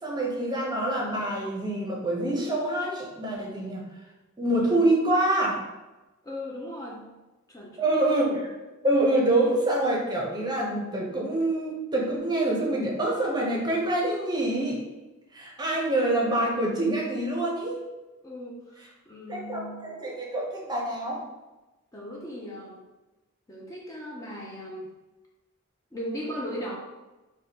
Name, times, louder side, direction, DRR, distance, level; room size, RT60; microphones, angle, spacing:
voice 1, 0.0-3.9 4.4-5.6 7.8-8.5 8.8-14.8 15.3-17.8 19.3-21.2, right 1 dB, 20° right, -2 dB, 0.7 m, -26 dB
voice 2, 6.2-7.2 7.5-7.9 18.2-20.1 21.9-22.8 23.5-24.9 25.9-26.8, equal, 15° left, -3 dB, 0.4 m, -38 dB
4.8 x 2.2 x 2.8 m, 1.1 s
head